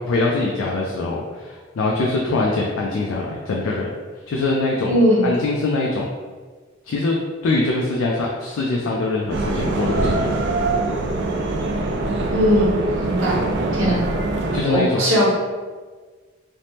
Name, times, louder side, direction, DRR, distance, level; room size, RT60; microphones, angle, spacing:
voice 1, 0.0-3.9 4.3-6.1 6.9-7.1 7.4-10.3 13.8-14.0 14.5-15.0, left 2 dB, 75° left, -2 dB, 0.4 m, -23 dB
voice 2, 4.9-5.3 12.3-12.7 13.0-13.4 13.8-14.0 14.7-15.3, equal, 80° right, -6 dB, 1.0 m, -18 dB
sound 1, 9.3-14.6, right 2 dB, 55° right, 0.3 m, -23 dB
3.3 x 2.0 x 2.7 m, 1.4 s
head